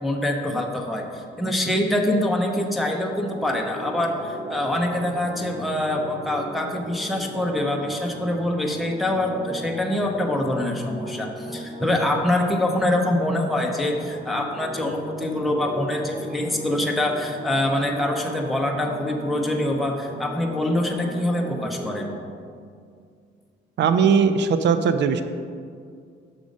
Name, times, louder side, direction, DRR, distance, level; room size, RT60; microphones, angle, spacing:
voice 1, 0.0-1.0 1.4-22.2, left 1 dB, ahead, 0 dB, 0.7 m, -25 dB
sound 1, 2.8-22.2, right 1 dB, 30° right, 1.0 m, -37 dB
voice 2, 23.8-25.2, right 6 dB, 65° right, 10 dB, 0.5 m, -19 dB
6.1 x 5.0 x 5.3 m, 2.2 s
cardioid pair, 90°, 20 cm